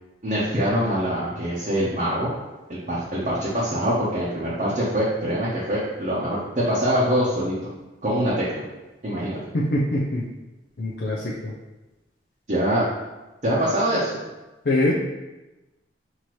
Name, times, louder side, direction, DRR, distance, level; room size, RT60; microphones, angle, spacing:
voice 1, 0.2-2.3 2.7-7.6 8.0-8.6 9.0-9.4 12.5-12.8 13.4-14.2, equal, 40° right, -8 dB, 0.8 m, -24 dB
voice 2, 9.5-10.2 10.8-11.5 14.7-14.9, left 1 dB, 60° left, -4 dB, 0.5 m, -23 dB
5.9 x 2.7 x 3.0 m, 1.1 s
head